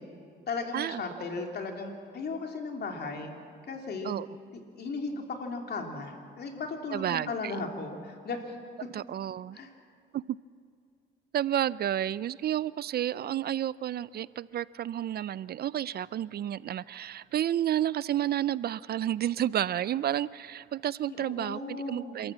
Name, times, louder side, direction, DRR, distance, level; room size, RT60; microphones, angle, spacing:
voice 1, 0.5-3.3 3.7-4.2 4.8-8.5 9.5-9.7 21.1-22.2, left 3 dB, 55° left, 3 dB, 2.9 m, -36 dB
voice 2, 6.9-7.6 8.9-9.6 10.1-10.2 11.3-22.3, right 11 dB, 55° right, 20 dB, 0.4 m, -31 dB
26.5 x 14.0 x 7.4 m, 2.3 s
cardioid pair, 90°, 20 cm